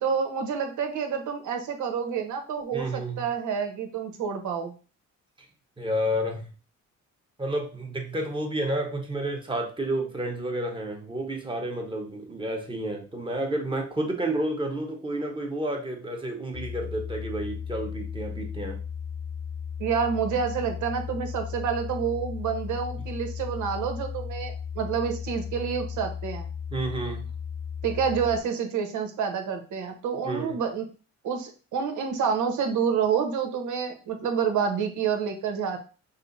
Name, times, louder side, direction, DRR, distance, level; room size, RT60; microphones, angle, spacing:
voice 1, 0.0-4.7 19.8-26.5 27.8-30.9 31.2-35.8, right 6 dB, 75° right, 5 dB, 1.0 m, -28 dB
voice 2, 2.7-3.2 5.8-6.5 7.4-18.8 26.7-27.3 30.2-30.6, right 1 dB, 15° right, 1 dB, 1.2 m, -30 dB
sound 1, 16.5-28.4, left 7 dB, 80° left, 1.1 m, -35 dB
5.4 x 2.1 x 4.0 m, 0.36 s
cardioid pair, 90°, 30 cm